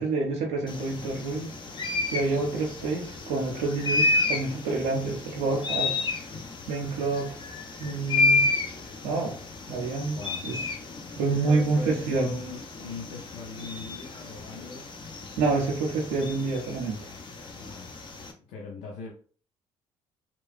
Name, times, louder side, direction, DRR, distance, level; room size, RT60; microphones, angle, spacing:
voice 1, 0.0-1.5 2.1-6.0 6.7-7.3 7.8-8.5 9.0-9.4 9.7-10.6 11.2-12.3 15.4-17.0, right 3 dB, 85° right, -2 dB, 0.5 m, -28 dB
sound 1, 0.7-18.3, left 3 dB, 35° left, 0.6 m, -31 dB
voice 2, 10.1-10.4 11.3-14.9 17.5-17.9 18.5-19.1, left 3 dB, 75° left, -2 dB, 0.6 m, -40 dB
2.9 x 2.2 x 2.4 m, 0.43 s
hypercardioid pair, 55°, 14 cm